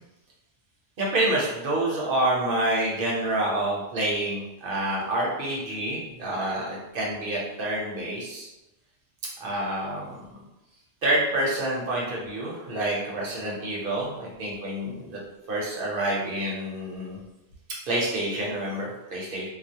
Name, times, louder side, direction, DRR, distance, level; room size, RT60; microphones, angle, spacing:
voice 1, 1.0-8.5 9.4-10.4 11.0-15.2 15.5-17.2 17.9-19.5, right 1 dB, 55° right, -4 dB, 0.7 m, -28 dB
2.3 x 2.1 x 2.7 m, 0.96 s
omnidirectional pair, 1.2 m